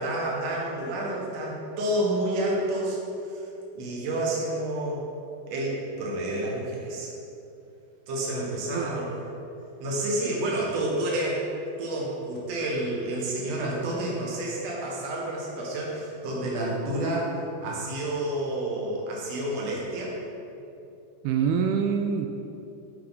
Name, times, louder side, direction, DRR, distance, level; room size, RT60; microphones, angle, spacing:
voice 1, 0.0-3.0 3.3-3.5 3.8-5.0 5.5-7.1 8.1-9.2 9.8-11.4 11.8-17.3 17.6-20.1, right 1 dB, 55° right, -4 dB, 2.3 m, -29 dB
voice 2, 21.2-22.3, right 7 dB, 85° right, 4 dB, 2.4 m, -25 dB
11.5 x 5.6 x 4.1 m, 2.8 s
omnidirectional pair, 4.4 m